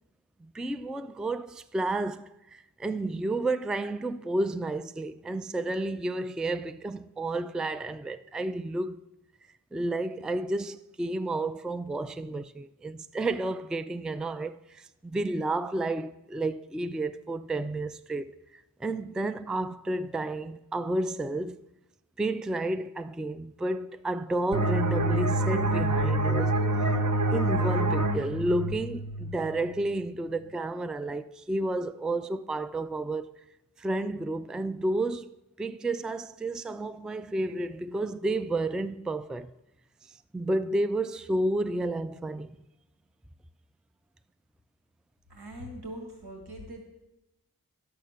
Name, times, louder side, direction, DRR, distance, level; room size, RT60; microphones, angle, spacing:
voice 1, 0.4-9.0 9.7-21.6 22.2-27.0 27.3-33.4 33.8-39.5 40.3-42.5, right 2 dB, ahead, 0.4 m, -31 dB
sound 1, 24.5-29.9, right 1 dB, 50° right, 1.2 m, -27 dB
voice 2, 45.3-46.8, equal, 75° right, 2.0 m, -41 dB
10.5 x 6.8 x 6.5 m
wide cardioid pair, 45°, 39 cm